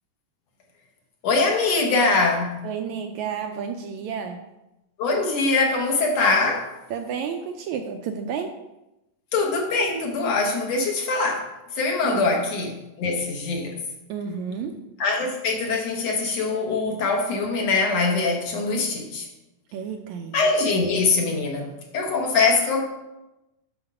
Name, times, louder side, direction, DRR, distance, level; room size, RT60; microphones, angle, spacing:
voice 1, 1.2-2.6 5.0-6.7 9.3-13.8 15.0-19.3 20.3-22.8, left 3 dB, 65° left, 1 dB, 2.0 m, -23 dB
voice 2, 2.6-4.4 6.9-8.6 12.0-12.4 14.1-14.8 19.7-20.4, right 7 dB, 80° right, 5 dB, 1.8 m, -31 dB
8.0 x 6.2 x 5.4 m, 0.96 s
omnidirectional pair, 3.7 m